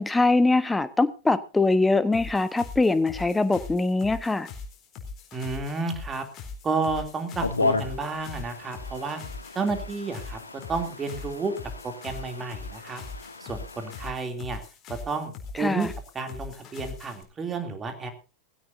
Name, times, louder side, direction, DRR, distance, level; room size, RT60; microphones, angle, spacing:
voice 1, 0.0-4.5 15.6-15.9, left 3 dB, 10° left, 1.2 m, -23 dB
sound 1, 2.1-17.2, left 4 dB, 30° left, 4.2 m, -41 dB
voice 2, 5.3-6.2 6.6-9.2 9.5-10.4 10.7-11.5 11.8-13.0 13.4-14.6 14.9-15.9 16.1-18.1, right 4 dB, 20° right, 3.0 m, -31 dB
sound 2, 7.4-14.1, left 3 dB, 80° left, 1.6 m, -34 dB
19.5 x 16.0 x 2.7 m
figure-of-eight pair, 90°, 0 cm